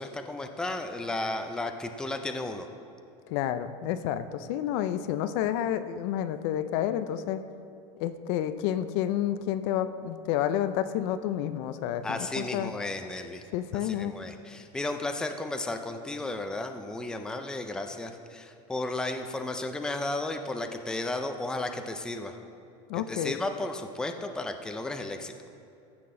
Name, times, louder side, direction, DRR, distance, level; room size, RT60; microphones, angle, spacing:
voice 1, 0.0-2.7 12.0-13.4 13.7-22.4 22.9-25.3, left 2 dB, 5° left, 6 dB, 0.4 m, -34 dB
voice 2, 3.3-7.4 8.0-12.7 13.5-14.1 22.9-23.4, left 11 dB, 65° left, 11 dB, 0.5 m, -30 dB
14.5 x 6.0 x 3.7 m, 2.7 s
supercardioid pair, 140°, 15 cm